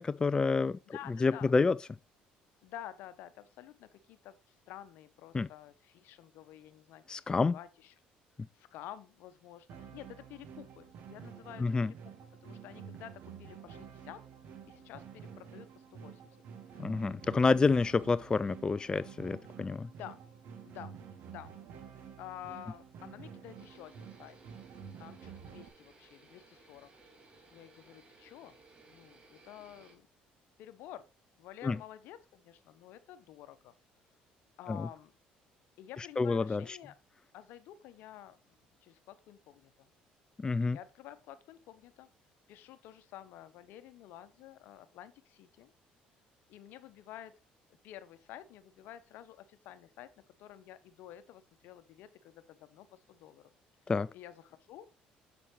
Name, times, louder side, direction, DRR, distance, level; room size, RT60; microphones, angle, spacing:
voice 1, 0.0-1.8 5.3-5.5 7.1-7.6 11.6-11.9 16.8-19.9 31.6-31.8 34.7-34.9 36.0-36.8 40.4-40.8 53.9-54.1, left 4 dB, 25° left, 0.3 m, -29 dB
voice 2, 0.9-1.5 2.6-7.9 8.5-12.1 12.4-14.2 14.7-16.2 16.7-16.9 20.0-20.2 20.6-21.0 21.3-21.5 22.2-24.4 25.0-26.9 27.5-28.6 28.9-30.1 30.6-31.0 31.4-33.7 34.6-35.1 35.8-36.9 37.3-38.4 38.8-39.9 40.7-42.1 42.5-45.7 46.5-47.3 47.8-50.1 50.4-53.4 54.1-54.9, left 12 dB, 75° left, 0.9 m, -50 dB
sound 1, 9.7-25.7, right 7 dB, 65° right, 1.3 m, -50 dB
sound 2, 23.5-30.0, right 3 dB, 35° right, 2.8 m, -60 dB
7.1 x 7.0 x 3.2 m
supercardioid pair, 70°, 3 cm